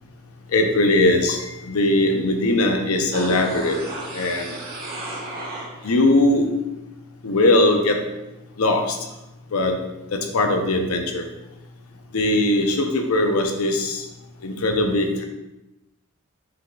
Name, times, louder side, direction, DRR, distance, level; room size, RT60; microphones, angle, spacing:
voice 1, 0.5-3.8 4.1-4.5 5.8-6.5 7.2-8.0 8.6-9.0 9.5-9.7 10.1-11.2 12.1-14.0 14.4-15.2, left 2 dB, 75° left, 4 dB, 0.7 m, -20 dB
sound 1, 3.1-6.1 6.4-6.5, right 2 dB, 45° right, 0.9 m, -33 dB
5.6 x 3.9 x 2.4 m, 0.98 s
head